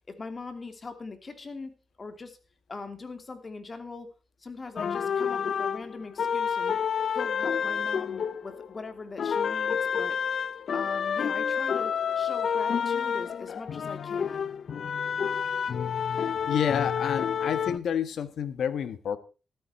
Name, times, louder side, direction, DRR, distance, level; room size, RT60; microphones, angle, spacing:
voice 1, 0.2-2.4 2.7-4.1 4.4-6.7 7.1-10.2 10.7-14.5, left 3 dB, 35° left, 2.7 m, -41 dB
sound 1, 4.8-8.8 9.2-17.8, left 7 dB, 60° left, 0.6 m, -29 dB
voice 2, 16.4-19.2, left 8 dB, 80° left, 1.4 m, -29 dB
13.5 x 13.5 x 4.3 m
cardioid pair, 105°, 0 cm